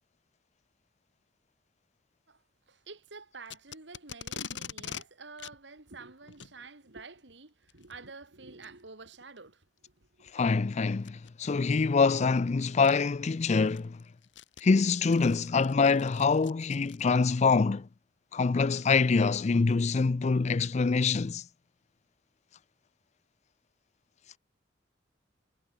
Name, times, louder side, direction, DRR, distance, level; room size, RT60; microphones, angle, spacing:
voice 1, 2.3-10.4, right 3 dB, 70° right, 2.6 m, -49 dB
Packing tape duct tape, 3.5-5.0 5.4-5.6 6.3-6.5 7.7-7.9 8.6-8.7 9.4-9.5 11.0-11.3 12.4-12.5 12.8-12.9 13.4-17.3, left 7 dB, 85° left, 3.4 m, -43 dB
voice 2, 10.3-14.0 14.6-17.9 18.3-21.4, left 4 dB, 40° left, 0.4 m, -25 dB
head